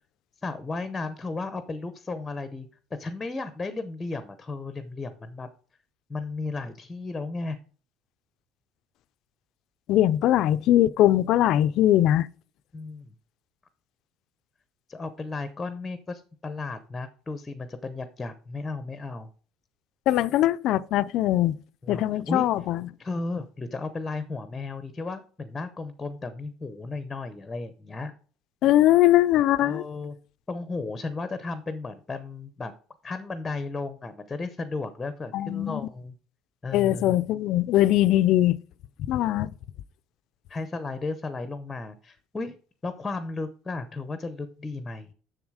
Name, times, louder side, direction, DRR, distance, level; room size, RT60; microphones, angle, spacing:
voice 1, 0.4-2.7 3.0-5.5 6.1-7.6 12.7-13.1 14.9-19.3 21.8-22.5 23.0-28.1 29.6-30.2 30.5-32.7 33.0-36.2 36.6-37.2 40.5-42.6 42.8-45.1, left 3 dB, 15° left, 0.7 m, -34 dB
voice 2, 9.9-12.3 20.1-21.6 21.9-22.8 28.6-29.8 35.3-35.8 36.7-38.6 39.1-39.5, left 13 dB, 55° left, 0.4 m, -21 dB
7.2 x 7.0 x 4.8 m
cardioid pair, 155°, 0 cm